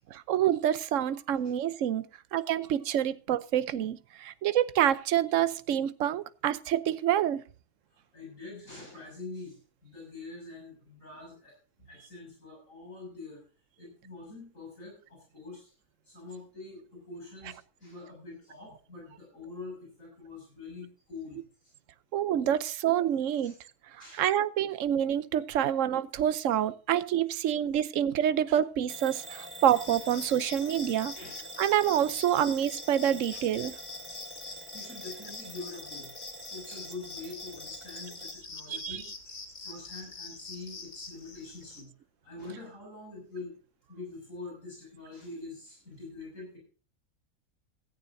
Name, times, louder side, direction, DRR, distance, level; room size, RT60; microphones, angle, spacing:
voice 1, 0.1-2.1 2.3-7.4 22.1-23.5 24.1-31.1 31.6-33.7 38.7-39.0, right 10 dB, 65° right, 15 dB, 1.1 m, -27 dB
voice 2, 7.9-9.6 9.8-11.5 11.8-13.4 13.8-15.7 16.1-21.4 23.4-23.6 24.0-24.3 31.1-31.4 34.1-34.3 34.7-36.1 36.5-41.9 42.2-43.5 43.9-46.6, left 3 dB, 65° left, -1 dB, 7.0 m, -45 dB
Bell / Alarm, 28.9-38.4, right 1 dB, 10° right, 1.8 m, -46 dB
sound 1, 29.7-41.8, left 4 dB, 85° left, 3.0 m, -45 dB
16.0 x 14.5 x 2.7 m, 0.37 s
omnidirectional pair, 1.5 m